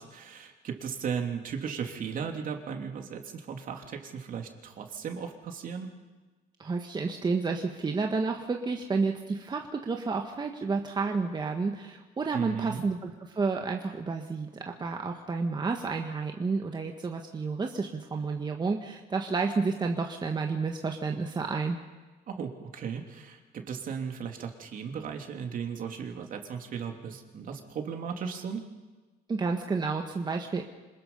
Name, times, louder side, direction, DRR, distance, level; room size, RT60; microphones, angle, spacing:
voice 1, 0.0-5.9 12.3-12.8 22.3-28.6, right 6 dB, 55° right, 3 dB, 3.0 m, -36 dB
voice 2, 6.6-21.8 29.3-30.6, right 4 dB, 25° right, 3 dB, 1.6 m, -30 dB
26.5 x 20.0 x 5.6 m, 1.3 s
cardioid pair, 110°, 17 cm